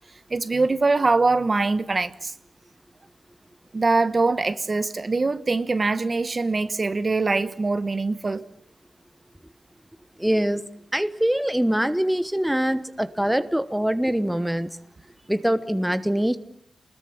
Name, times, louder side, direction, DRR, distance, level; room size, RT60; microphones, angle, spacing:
voice 1, 0.3-2.3 3.7-8.5, right 3 dB, 40° right, 1.2 m, -23 dB
voice 2, 10.2-10.6 10.9-14.7 15.3-16.4, equal, 5° right, 1.0 m, -23 dB
29.0 x 20.5 x 7.3 m
wide cardioid pair, 105°, 0 cm